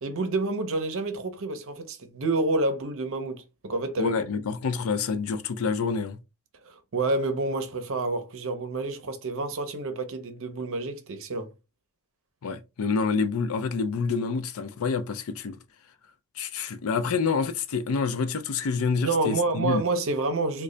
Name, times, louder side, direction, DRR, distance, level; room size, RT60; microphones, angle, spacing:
voice 1, 0.0-4.1 6.6-11.5 19.0-20.6, right 2 dB, 60° right, 0.7 m, -28 dB
voice 2, 4.0-6.2 12.4-15.6 16.4-19.8, left 5 dB, 65° left, 0.4 m, -27 dB
3.1 x 2.3 x 3.8 m
head